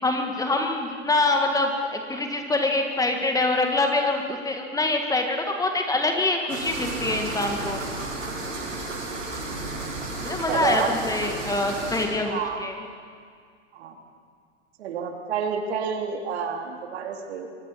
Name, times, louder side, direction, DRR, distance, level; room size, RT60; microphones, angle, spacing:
voice 1, 0.0-7.8 10.2-12.7, left 2 dB, 10° left, 4 dB, 1.9 m, -25 dB
sound 1, 6.5-12.0, right 2 dB, 90° right, 7.1 m, -32 dB
voice 2, 10.5-11.0 12.2-12.6 13.7-14.0 14.8-17.5, right 6 dB, 55° right, 3 dB, 3.5 m, -29 dB
24.5 x 23.5 x 5.9 m, 2.1 s
hypercardioid pair, 115°, 38 cm